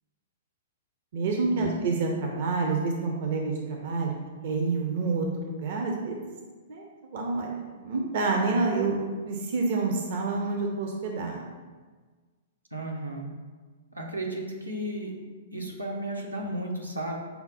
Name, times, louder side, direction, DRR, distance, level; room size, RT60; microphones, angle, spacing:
voice 1, 1.1-4.2 4.4-6.2 6.7-11.5, right 3 dB, 55° right, 1 dB, 0.5 m, -28 dB
voice 2, 12.7-13.3 13.9-15.1 15.5-17.1, right 1 dB, 90° right, -1 dB, 0.7 m, -33 dB
5.6 x 2.0 x 4.0 m, 1.4 s
figure-of-eight pair, 110°, 0 cm